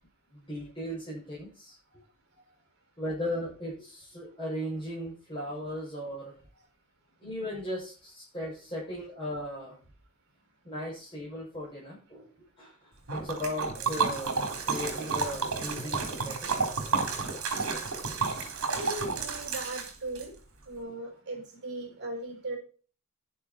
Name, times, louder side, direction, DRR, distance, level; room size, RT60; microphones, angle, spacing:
voice 1, 0.3-1.7 3.0-6.3 7.2-9.8 10.6-12.3 12.6-16.5, left 1 dB, 25° left, -8 dB, 7.8 m, -37 dB
Liquid, 13.1-20.3, right 4 dB, 70° right, 3.9 m, -31 dB
voice 2, 18.7-20.3 20.6-22.6, right 2 dB, 50° right, 1 dB, 6.9 m, -38 dB
11.0 x 11.0 x 4.5 m, 0.38 s
head